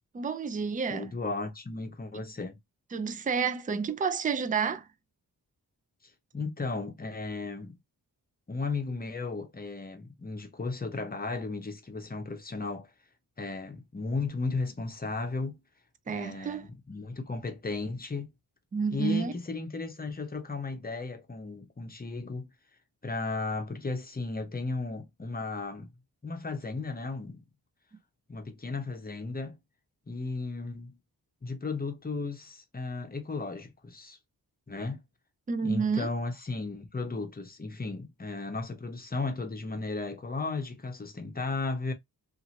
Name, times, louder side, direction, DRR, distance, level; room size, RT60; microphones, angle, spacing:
voice 1, 0.1-1.1 2.1-2.2 2.9-4.9 16.1-16.7 18.7-19.3 35.5-36.1, right 5 dB, 20° right, 0.4 m, -30 dB
voice 2, 0.9-2.6 6.3-7.8 8.5-12.9 13.4-15.6 16.1-18.3 18.9-22.5 23.0-25.9 26.2-27.4 28.3-29.6 30.1-31.0 31.4-34.2 34.7-35.0 35.6-41.9, left 3 dB, 25° left, 0.7 m, -35 dB
2.7 x 2.5 x 2.8 m
cardioid pair, 80°, 37 cm